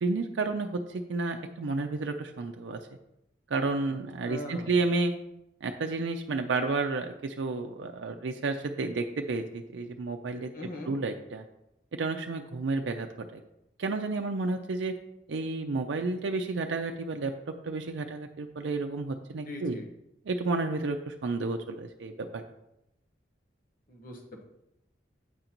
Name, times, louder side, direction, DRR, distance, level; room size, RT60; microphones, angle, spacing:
voice 1, 0.0-2.8 3.5-5.1 5.6-11.4 11.9-13.4 13.8-14.9 15.3-17.3 17.6-19.8 20.3-22.4, right 3 dB, 80° right, 4 dB, 0.5 m, -31 dB
voice 2, 4.2-4.7 10.5-11.0 19.5-19.8 23.9-24.4, left 1 dB, 50° left, 1 dB, 1.2 m, -40 dB
8.1 x 3.9 x 4.4 m, 0.86 s
head